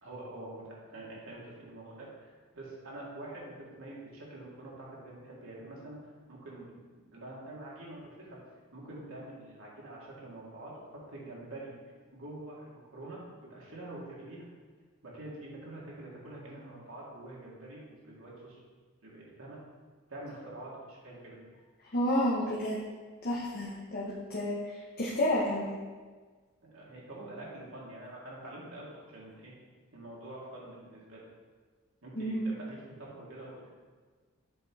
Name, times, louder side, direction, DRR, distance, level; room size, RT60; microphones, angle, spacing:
voice 1, 0.0-6.7 7.1-8.4 8.7-11.7 12.1-13.2 13.5-14.4 15.0-18.6 19.0-19.6 20.1-21.4 26.6-29.5 29.9-31.3 32.0-33.7, right 1 dB, 70° right, -5 dB, 1.8 m, -46 dB
voice 2, 21.9-22.8 23.2-24.6 25.0-25.8 32.2-32.5, left 1 dB, 45° left, -5 dB, 0.8 m, -30 dB
7.4 x 3.6 x 4.6 m, 1.4 s
head